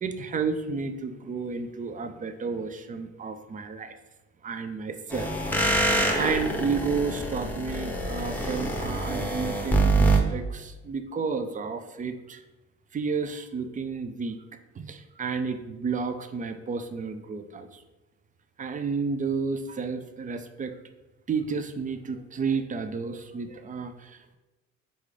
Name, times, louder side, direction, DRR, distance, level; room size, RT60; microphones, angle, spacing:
voice 1, 0.0-4.0 4.4-5.3 5.9-12.4 12.9-14.4 14.8-17.8 18.6-20.8 21.3-24.3, right 5 dB, 25° right, 8 dB, 0.4 m, -31 dB
sound 1, 5.1-10.2, right 2 dB, 5° left, 0.8 m, -25 dB
3.9 x 3.5 x 3.2 m, 1.1 s
supercardioid pair, 70°, 32 cm